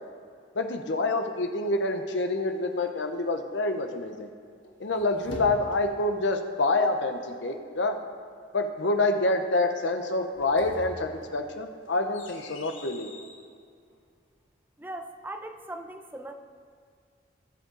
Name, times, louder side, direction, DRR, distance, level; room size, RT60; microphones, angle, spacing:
voice 1, 0.5-4.3 4.8-8.0 8.5-13.1, left 2 dB, 70° left, 5 dB, 0.8 m, -27 dB
sound 1, 4.6-6.1 10.2-13.5, left 1 dB, 85° left, 1.4 m, -44 dB
voice 2, 14.8-16.3, right 1 dB, 10° right, 6 dB, 0.6 m, -39 dB
18.5 x 6.5 x 3.9 m, 2.3 s
head